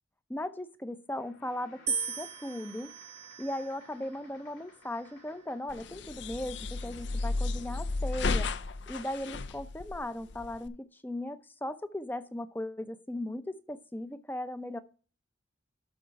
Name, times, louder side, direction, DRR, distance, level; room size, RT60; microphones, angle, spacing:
voice 1, 0.3-2.9 3.4-8.5 8.9-14.8, left 1 dB, 10° left, 0.6 m, -37 dB
sound 1, 1.1-6.1, left 3 dB, 80° left, 2.7 m, -58 dB
sound 2, 1.9-4.1 4.9-5.4, right 5 dB, 35° right, 0.7 m, -38 dB
sound 3, 5.7-10.7, left 3 dB, 60° left, 0.6 m, -33 dB
12.5 x 4.2 x 4.7 m
head